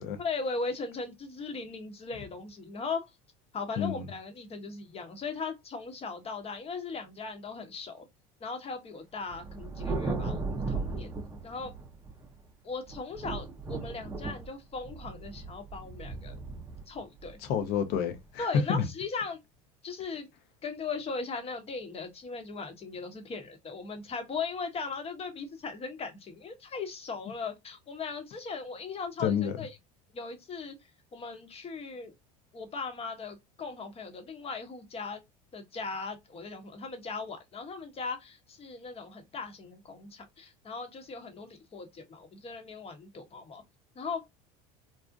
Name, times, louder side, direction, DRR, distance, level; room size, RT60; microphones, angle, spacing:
voice 1, 0.2-3.1 3.5-8.0 8.4-11.1 11.4-11.8 12.6-16.4 16.9-17.4 18.4-19.4 19.8-20.3 20.6-29.7 30.1-30.7 31.1-32.1 32.5-35.2 35.5-43.6 43.9-44.3, left 4 dB, 30° left, 0.8 m, -38 dB
Thunder, 9.3-12.4 12.9-18.2, right 3 dB, 15° right, 0.6 m, -37 dB
voice 2, 17.5-18.9 29.2-29.5, left 7 dB, 60° left, 0.7 m, -28 dB
2.6 x 2.1 x 2.4 m
supercardioid pair, 90°, 19 cm